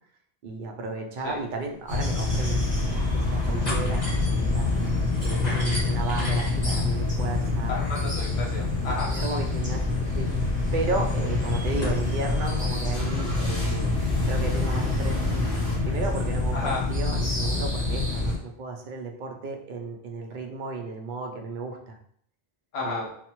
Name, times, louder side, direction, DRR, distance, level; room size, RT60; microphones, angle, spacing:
voice 1, 0.4-4.7 5.2-7.7 9.1-10.3 10.7-13.9 14.2-22.0 22.8-23.1, right 3 dB, 60° right, 2 dB, 0.6 m, -34 dB
sound 1, 1.9-18.4, left 2 dB, 10° right, 0.8 m, -26 dB
sound 2, 2.2-15.8, left 1 dB, 60° left, 1.3 m, -44 dB
sound 3, 2.9-3.1 3.4-12.0, equal, 45° left, 1.6 m, -39 dB
voice 2, 7.7-9.1 16.5-16.8 22.7-23.1, left 3 dB, 85° left, -2 dB, 0.9 m, -32 dB
3.3 x 2.0 x 2.9 m, 0.65 s
omnidirectional pair, 1.0 m